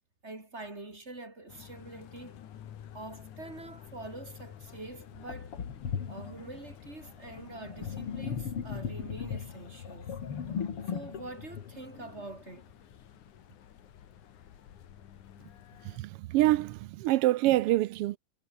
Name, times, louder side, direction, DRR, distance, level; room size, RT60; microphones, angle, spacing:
voice 1, 0.2-2.4 2.9-5.5 6.1-10.1 10.9-12.6, right 2 dB, 20° right, 5.1 m, -45 dB
sound 1, 1.5-16.0, left 10 dB, 85° left, 3.3 m, -52 dB
Sink (filling or washing), 4.6-4.7 5.3-12.6, left 7 dB, 50° left, 3.0 m, -38 dB
voice 2, 15.8-18.2, right 16 dB, 85° right, 1.3 m, -26 dB
omnidirectional pair, 3.4 m